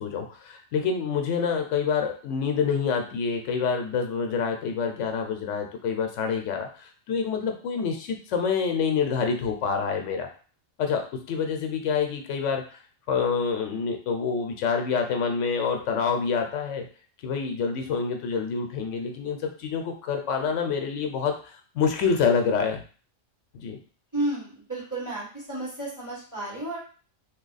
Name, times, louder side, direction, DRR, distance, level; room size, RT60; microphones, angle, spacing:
voice 1, 0.0-10.3 10.8-12.6 13.1-16.8 17.2-22.8 23.5-23.8, left 6 dB, 85° left, 5 dB, 0.9 m, -27 dB
voice 2, 24.1-26.8, right 1 dB, 15° right, -7 dB, 1.5 m, -32 dB
2.8 x 2.2 x 4.0 m, 0.39 s
omnidirectional pair, 1.2 m